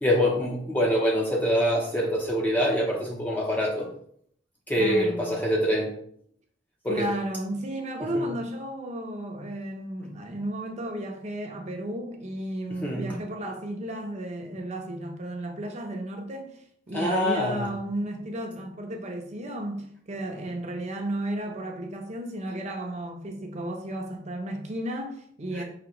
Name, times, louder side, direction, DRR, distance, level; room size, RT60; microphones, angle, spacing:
voice 1, 0.0-3.9 4.7-5.9 6.8-7.1 8.1-8.2 12.8-13.2 16.9-17.7 25.5-25.6, equal, 10° left, 0.6 m, -25 dB
voice 2, 4.8-5.3 6.9-25.6, right 1 dB, 40° right, 0.7 m, -33 dB
5.0 x 2.8 x 2.9 m
head